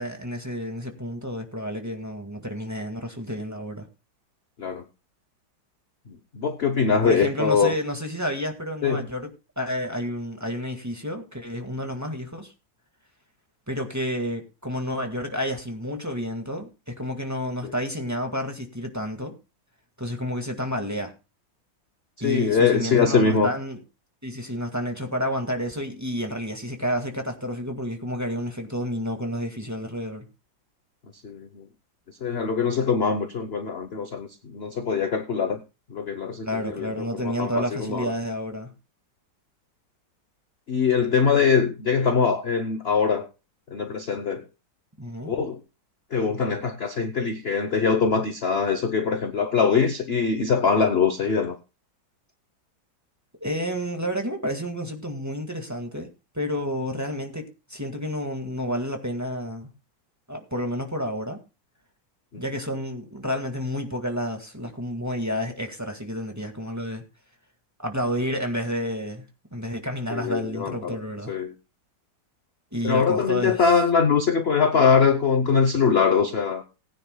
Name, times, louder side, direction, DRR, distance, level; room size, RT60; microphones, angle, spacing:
voice 1, 0.0-3.9 7.0-9.3 9.6-12.5 13.7-19.3 20.0-21.1 22.2-23.8 24.2-30.3 36.4-38.7 45.0-45.3 53.4-56.1 56.3-59.7 60.3-61.4 62.4-67.0 67.8-69.3 69.5-71.3 72.7-73.7, equal, 10° right, 1.7 m, -30 dB
voice 2, 6.1-7.7 8.8-9.0 17.6-17.7 22.2-23.5 31.2-31.7 32.2-35.6 35.9-38.1 40.7-43.3 43.7-44.4 45.3-45.6 46.1-51.6 70.1-71.0 71.3-71.5 72.8-76.6, left 5 dB, 45° left, 0.8 m, -22 dB
19.5 x 9.9 x 2.3 m
omnidirectional pair, 2.2 m